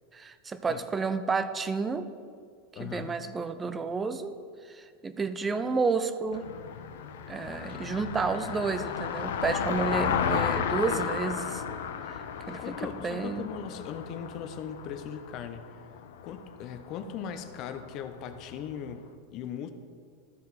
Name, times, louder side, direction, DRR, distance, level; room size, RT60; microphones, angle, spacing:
voice 1, 0.1-2.1 2.8-4.3 4.7-6.5 7.3-11.6 12.5-12.8 13.0-13.5, right 4 dB, 10° right, 11 dB, 0.4 m, -31 dB
voice 2, 2.8-3.2 12.6-15.8 16.2-19.7, left 8 dB, 35° left, 9 dB, 0.6 m, -39 dB
Car passing by, 6.3-18.6, left 7 dB, 80° left, 0.6 m, -34 dB
Guitar, 7.7-8.9, left 5 dB, 60° left, 0.9 m, -49 dB
13.0 x 4.7 x 4.1 m, 2.1 s
supercardioid pair, 165°, 0 cm